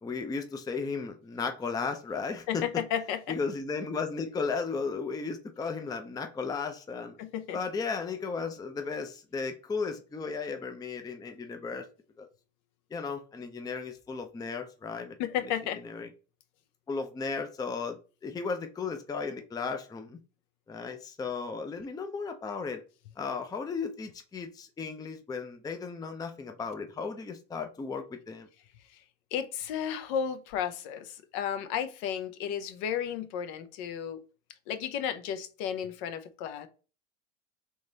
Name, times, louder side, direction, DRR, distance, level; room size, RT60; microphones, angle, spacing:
voice 1, 0.0-2.8 3.3-7.2 7.5-11.9 12.2-12.3 12.9-15.2 15.8-16.1 16.9-20.2 20.7-22.8 23.2-28.5, left 4 dB, 10° left, 0.5 m, -35 dB
voice 2, 2.5-3.2 7.2-7.6 15.2-15.8 28.9-29.0 29.3-34.2 34.7-36.7, left 8 dB, 60° left, 0.8 m, -33 dB
3.7 x 3.1 x 3.9 m
hypercardioid pair, 85°, 40 cm